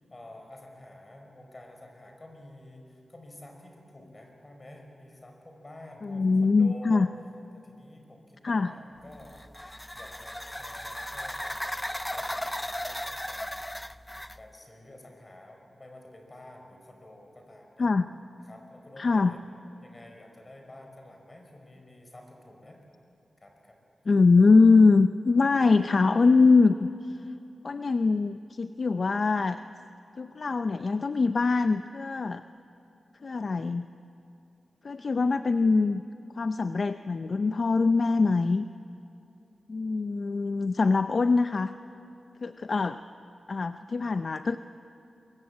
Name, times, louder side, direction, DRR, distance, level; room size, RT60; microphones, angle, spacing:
voice 1, 0.0-7.1 7.5-9.4 9.9-13.7 14.3-17.9 18.4-19.5 19.8-22.8 23.4-23.8, left 1 dB, 30° left, 3 dB, 5.1 m, -49 dB
voice 2, 6.0-7.1 8.4-8.7 17.8-18.1 19.0-19.3 24.1-26.9 27.6-29.6 30.2-32.4 33.2-33.9 34.8-36.0 36.4-38.7 39.7-41.7 42.4-43.0 43.5-44.6, left 4 dB, 50° left, 10 dB, 0.6 m, -23 dB
sound 1, 9.1-14.4, left 1 dB, 10° left, 0.5 m, -36 dB
23.0 x 22.5 x 8.7 m, 2.9 s
wide cardioid pair, 100°, 0 cm